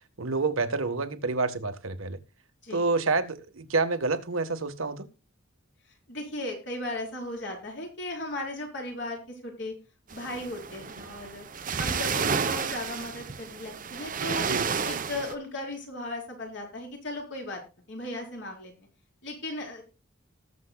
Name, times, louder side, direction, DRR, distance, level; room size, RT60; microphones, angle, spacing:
voice 1, 0.2-2.2 2.7-5.1 14.4-14.7, right 3 dB, 85° right, 1.4 m, -28 dB
voice 2, 6.1-9.7 10.1-11.4 11.8-14.5 14.8-17.6 17.9-18.7 19.2-19.8, left 1 dB, 55° left, 4.6 m, -36 dB
sound 1, 10.1-15.3, right 5 dB, 40° right, 0.8 m, -31 dB
19.0 x 7.5 x 2.3 m
head